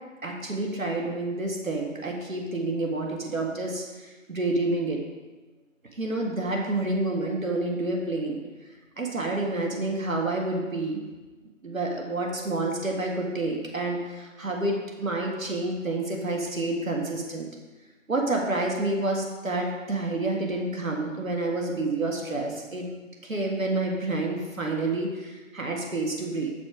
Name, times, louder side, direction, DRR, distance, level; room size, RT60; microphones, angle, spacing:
voice 1, 0.2-3.8 4.3-5.0 6.0-8.4 9.0-11.0 11.6-17.5 18.1-22.9 23.2-26.5, right 2 dB, 80° right, 0 dB, 1.9 m, -28 dB
6.6 x 6.0 x 5.0 m, 1.2 s
figure-of-eight pair, 165°, 40 cm